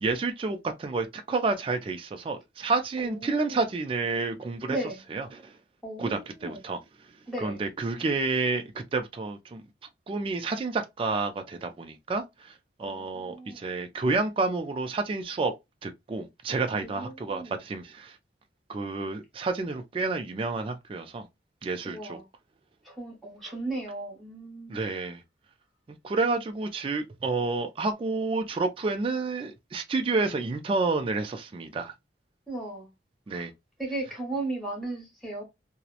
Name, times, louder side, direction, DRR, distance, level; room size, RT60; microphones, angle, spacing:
voice 1, 0.0-4.8 5.1-5.5 6.0-6.8 7.4-9.6 10.1-12.5 12.8-15.5 15.8-18.2 18.7-21.3 21.6-22.2 24.7-25.2 26.0-31.9 33.3-33.5, right 3 dB, 30° right, 0.3 m, -29 dB
voice 2, 3.0-3.6 4.7-5.0 5.8-6.6 7.3-7.6 12.8-13.6 16.8-17.5 21.8-22.2 22.8-24.8 32.5-32.9 33.3-33.5 33.8-35.4, right 2 dB, ahead, 1.1 m, -36 dB
2.8 x 2.0 x 2.3 m
head